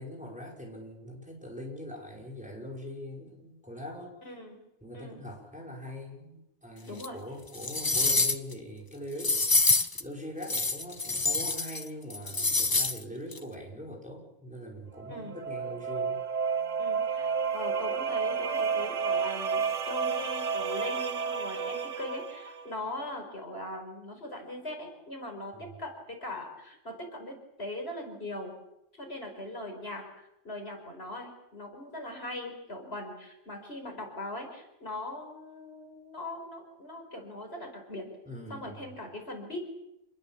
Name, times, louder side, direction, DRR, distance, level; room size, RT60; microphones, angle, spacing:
voice 1, 0.0-4.2 4.8-9.6 9.9-16.2 25.5-25.8 38.3-38.9, equal, 5° right, -1 dB, 5.3 m, -42 dB
voice 2, 4.3-4.6 4.9-5.2 6.9-7.2 15.1-15.4 16.8-28.5 29.0-30.0 30.4-38.1 38.5-39.6, left 1 dB, 50° left, 3 dB, 5.4 m, -40 dB
sound 1, 7.0-7.1 7.5-8.5 9.2-10.0 10.4-11.8 12.1-13.0 13.3-13.4, left 3 dB, 20° left, 0.9 m, -26 dB
sound 2, 15.0-22.7, right 6 dB, 70° right, 1.7 m, -31 dB
28.0 x 20.5 x 7.4 m, 0.87 s
omnidirectional pair, 1.3 m